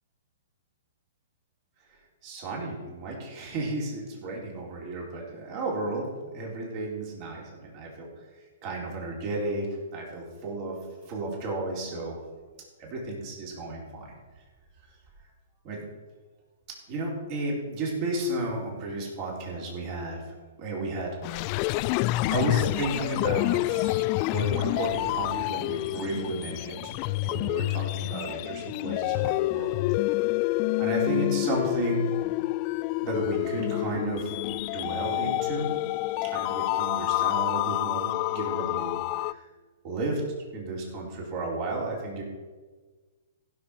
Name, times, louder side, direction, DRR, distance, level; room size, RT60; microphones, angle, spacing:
voice 1, 2.2-6.1 6.3-8.1 8.6-10.8 11.0-12.2 12.8-14.1 15.6-15.8 16.9-20.2 20.6-21.2 22.3-26.9 27.2-29.7 30.8-32.0 33.0-35.7 36.2-39.4 39.8-40.2 40.5-42.2, right 2 dB, 40° right, -2 dB, 4.0 m, -33 dB
sound 1, 21.2-39.3, left 19 dB, 40° left, 0.3 m, -28 dB
15.0 x 6.6 x 5.9 m, 1.4 s
hypercardioid pair, 135°, 0 cm